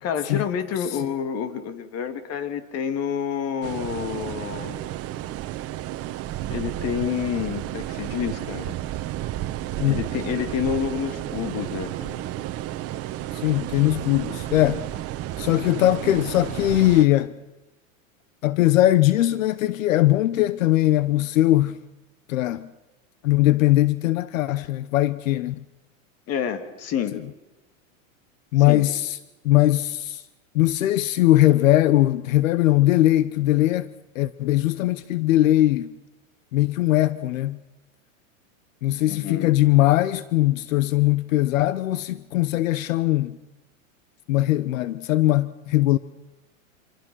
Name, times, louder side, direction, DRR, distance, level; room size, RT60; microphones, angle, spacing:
voice 1, 0.0-5.0 6.5-8.8 9.9-12.2 26.3-27.2 28.6-28.9 39.1-39.6, left 8 dB, 40° left, 2.3 m, -29 dB
sound 1, 3.6-17.1, right 14 dB, 35° right, 1.3 m, -32 dB
voice 2, 13.3-14.8 15.4-17.3 18.4-21.8 22.3-22.7 23.2-25.6 27.1-27.2 28.5-29.2 29.4-30.2 30.5-33.9 34.1-35.9 36.5-37.6 38.8-43.4 44.3-46.0, left 15 dB, 80° left, 0.9 m, -20 dB
26.0 x 24.0 x 6.2 m
supercardioid pair, 125°, 39 cm